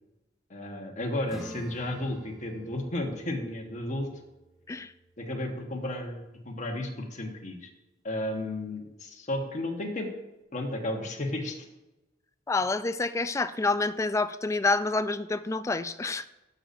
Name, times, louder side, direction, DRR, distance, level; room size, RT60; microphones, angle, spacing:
voice 1, 0.5-4.1 5.2-7.7 8.0-10.1 10.5-11.6, left 1 dB, 40° left, 2 dB, 1.3 m, -33 dB
Acoustic guitar / Strum, 1.3-6.5, equal, 5° right, 0.9 m, -49 dB
voice 2, 12.5-16.3, left 3 dB, 15° left, 12 dB, 0.3 m, -28 dB
12.0 x 6.6 x 2.6 m, 1.0 s
head